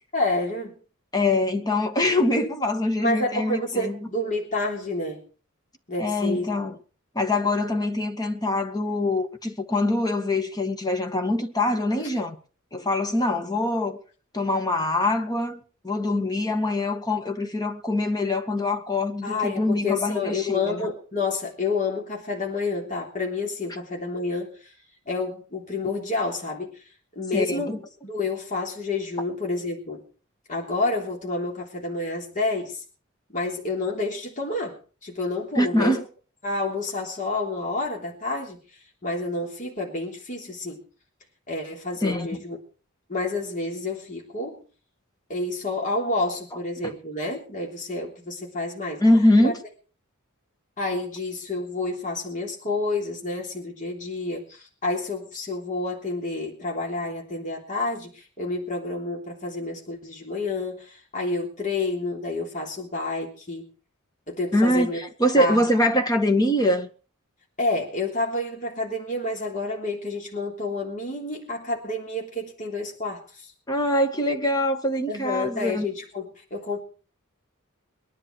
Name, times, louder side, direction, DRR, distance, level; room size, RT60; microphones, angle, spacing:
voice 1, 0.1-0.7 3.0-5.2 5.9-6.5 19.2-24.7 25.1-26.8 27.1-30.0 30.5-32.8 33.3-36.0 36.4-38.6 39.0-40.8 41.5-42.6 43.1-44.6 45.3-49.0 49.4-49.5 50.8-63.7 64.3-65.0 65.4-65.6 67.6-73.5 75.1-76.8, left 2 dB, 35° left, 3.4 m, -29 dB
voice 2, 1.1-4.0 6.0-6.8 7.1-12.4 12.7-14.0 14.3-20.8 27.3-27.8 35.5-36.0 42.0-42.4 46.8-46.9 49.0-49.6 64.5-66.9 73.7-75.9, left 1 dB, 20° left, 1.8 m, -24 dB
22.5 x 11.0 x 4.7 m
head